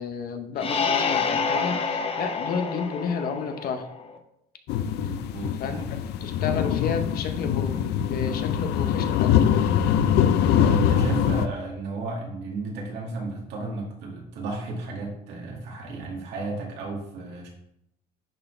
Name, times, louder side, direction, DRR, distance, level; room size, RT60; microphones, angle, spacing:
voice 1, 0.0-3.9 5.0-5.1 5.6-5.8 6.2-9.3, left 5 dB, 60° left, 6 dB, 1.0 m, -31 dB
sound 1, 0.6-4.2, left 5 dB, 35° left, 0.8 m, -28 dB
sound 2, 4.7-11.5, left 9 dB, 80° left, 0.5 m, -23 dB
voice 2, 5.0-6.0 10.5-17.5, right 3 dB, 85° right, -2 dB, 2.2 m, -33 dB
10.5 x 4.3 x 3.3 m, 0.79 s
cardioid pair, 110°, 17 cm